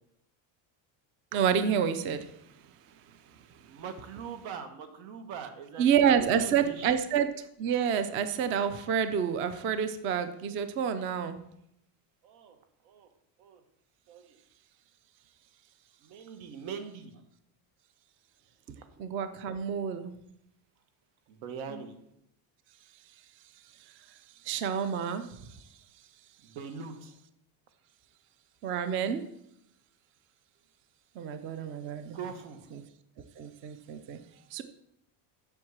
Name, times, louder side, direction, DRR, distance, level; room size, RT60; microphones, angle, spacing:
voice 1, 1.3-2.3 5.8-7.3 7.6-11.4 19.0-20.1 24.4-25.4 28.6-29.2 31.2-32.2 33.4-34.2 34.5-34.6, right 8 dB, 30° right, 11 dB, 0.3 m, -28 dB
voice 2, 3.7-7.0 12.2-12.6 12.8-13.1 13.4-13.6 14.1-14.4 16.0-17.2 21.3-21.9 26.4-27.1 32.1-32.6, right 6 dB, 80° right, 7 dB, 1.7 m, -42 dB
7.7 x 6.4 x 7.3 m, 0.76 s
cardioid pair, 175°, 48 cm